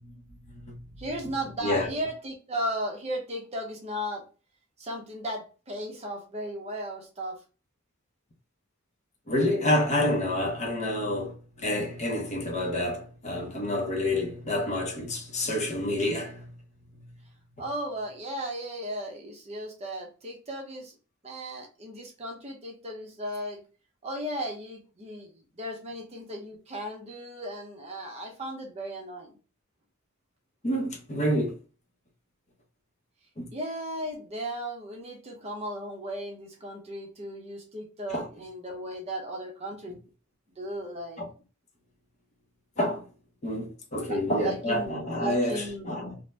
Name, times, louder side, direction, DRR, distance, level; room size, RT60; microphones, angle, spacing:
voice 1, 0.5-1.0 1.6-1.9 9.3-16.5 30.6-31.6 33.4-33.5 38.1-38.3 41.2-41.3 42.8-43.1 43.4-46.2, left 1 dB, 30° left, 0.7 m, -28 dB
voice 2, 1.0-4.2 4.8-7.4 17.6-21.0 21.2-23.6 24.0-25.3 25.6-29.4 33.5-40.0 40.6-41.2 44.1-45.9, equal, 30° right, 0.6 m, -36 dB
2.5 x 2.1 x 3.2 m
head